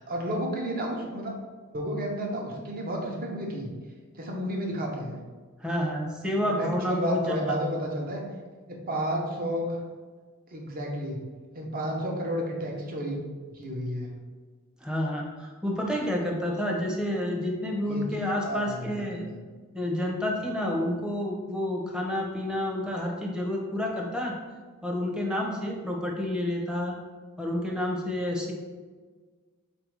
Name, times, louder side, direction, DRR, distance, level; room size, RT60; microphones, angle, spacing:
voice 1, 0.0-1.3 1.7-3.7 4.1-5.2 6.4-8.2 8.7-9.8 10.5-11.2 11.5-13.2 13.5-14.1 17.9-19.4, equal, 45° right, 0 dB, 0.8 m, -32 dB
voice 2, 5.6-7.2 14.8-19.3 19.7-24.4 24.8-27.0 27.4-28.5, left 1 dB, 5° right, -1 dB, 0.7 m, -29 dB
4.2 x 2.7 x 4.6 m, 1.4 s
head